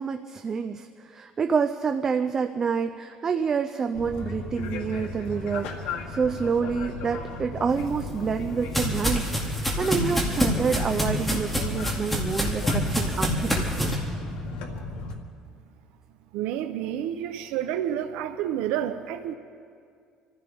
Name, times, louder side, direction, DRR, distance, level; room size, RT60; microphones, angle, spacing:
voice 1, 0.0-9.3 9.5-13.9, right 5 dB, 25° right, 7 dB, 0.5 m, -28 dB
sound 1, 3.9-15.2, left 3 dB, 85° left, 2.0 m, -36 dB
sound 2, 7.8-14.0, equal, 5° left, 2.4 m, -27 dB
voice 2, 16.3-19.3, right 10 dB, 85° right, 8 dB, 0.7 m, -29 dB
26.5 x 15.0 x 3.5 m, 2.2 s
cardioid pair, 160°, 2 cm